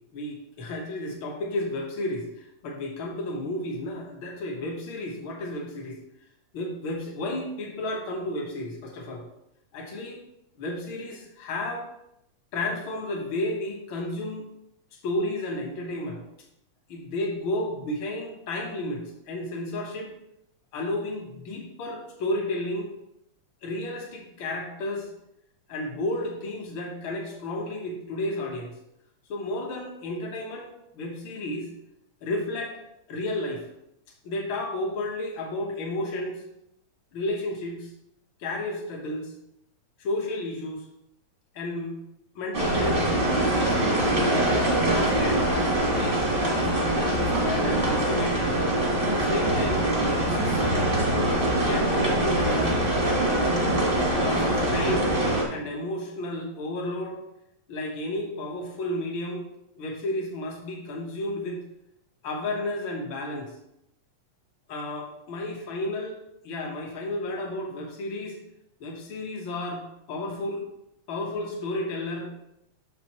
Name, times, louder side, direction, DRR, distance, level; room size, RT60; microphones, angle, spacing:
voice 1, 0.0-6.0 6.5-9.2 9.7-10.2 10.6-11.9 12.5-14.5 15.0-16.2 16.9-20.1 20.7-22.9 23.6-25.1 25.7-28.8 29.3-31.7 32.2-32.8 33.1-33.6 34.2-36.4 37.1-37.9 38.4-39.3 40.0-40.9 41.5-41.9 42.3-43.1 43.3-45.5 46.0-48.5 49.0-50.9 51.1-52.8 53.5-53.8 54.2-55.1 55.5-57.2 57.7-59.4 59.8-61.6 62.2-63.5 64.7-66.1 66.4-68.4 68.8-70.6 71.1-72.3, left 1 dB, 55° left, 0 dB, 1.5 m, -32 dB
sound 1, 42.5-55.4, right 1 dB, 35° right, 0.8 m, -23 dB
6.5 x 6.2 x 3.0 m, 0.80 s
omnidirectional pair, 3.3 m